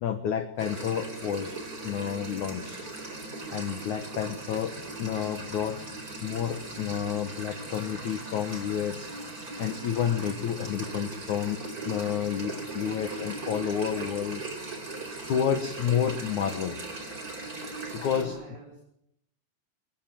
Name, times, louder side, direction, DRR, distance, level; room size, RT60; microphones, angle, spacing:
voice 1, 0.0-1.6 1.8-2.9 3.5-5.8 6.2-9.1 9.6-11.6 11.8-14.4 15.2-16.8 17.9-18.4, left 9 dB, 80° left, 10 dB, 1.7 m, -30 dB
sound 1, 0.6-18.2, right 2 dB, 20° right, 4.3 m, -39 dB
voice 2, 18.1-18.8, right 1 dB, 50° right, -3 dB, 7.3 m, -45 dB
27.0 x 22.0 x 7.7 m, 0.74 s
omnidirectional pair, 5.4 m